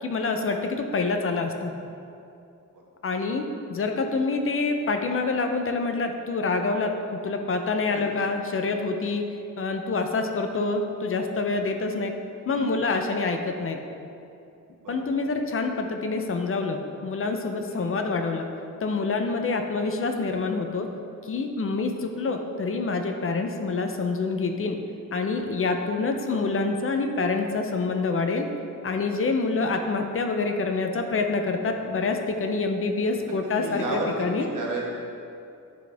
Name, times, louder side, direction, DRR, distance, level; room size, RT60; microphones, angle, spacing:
voice 1, 0.0-1.7 3.0-9.2 9.6-12.1 12.5-13.8 14.9-18.5 18.8-20.9 21.2-24.8 25.1-28.5 28.8-34.5, left 3 dB, 45° left, 5 dB, 0.5 m, -26 dB
voice 2, 33.2-34.8, right 2 dB, 70° right, -2 dB, 1.2 m, -33 dB
10.0 x 4.2 x 3.4 m, 2.6 s
wide cardioid pair, 160°, 32 cm